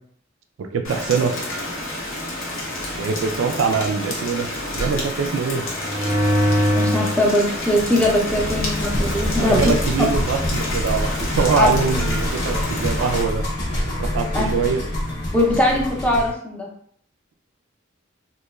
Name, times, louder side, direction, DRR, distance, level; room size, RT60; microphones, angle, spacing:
voice 1, 0.6-1.3 3.0-5.6 9.4-13.4 14.0-14.8, right 5 dB, 80° right, 5 dB, 0.3 m, -23 dB
Rain, 0.8-13.2, left 1 dB, 85° left, 0.7 m, -29 dB
sound 1, 5.7-7.2 7.7-16.3, left 1 dB, 55° left, 0.7 m, -24 dB
voice 2, 6.7-9.7 11.6-11.7 14.3-14.5 15.3-16.7, left 1 dB, 5° left, -2 dB, 0.5 m, -20 dB
3.0 x 2.1 x 2.3 m, 0.63 s
head